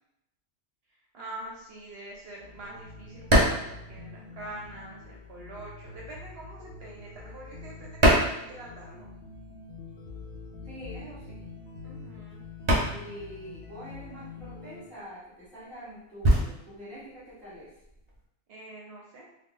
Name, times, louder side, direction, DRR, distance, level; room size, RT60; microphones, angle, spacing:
voice 1, 1.1-9.1 11.8-12.4 18.5-19.3, right 1 dB, 65° right, -4 dB, 0.8 m, -45 dB
sound 1, 1.5-4.8 5.1-9.2 9.5-18.2, right 1 dB, 30° right, 0.6 m, -28 dB
sound 2, 2.4-14.8, left 3 dB, 60° left, 0.6 m, -45 dB
voice 2, 10.6-11.4 12.8-17.7, equal, ahead, -10 dB, 1.4 m, -45 dB
2.4 x 2.2 x 3.7 m, 0.84 s
omnidirectional pair, 1.2 m